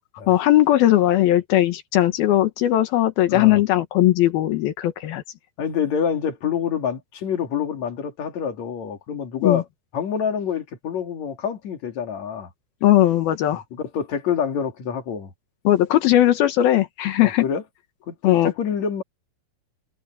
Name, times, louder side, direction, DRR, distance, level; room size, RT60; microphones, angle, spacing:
voice 1, 0.3-5.2 9.4-9.6 12.8-13.6 15.6-17.4 18.2-18.5, left 14 dB, 85° left, 3.2 m, -18 dB
voice 2, 5.6-9.6 9.9-12.5 13.7-15.3 17.2-17.6 18.1-19.0, left 7 dB, 50° left, 3.6 m, -26 dB
omnidirectional pair, 4.2 m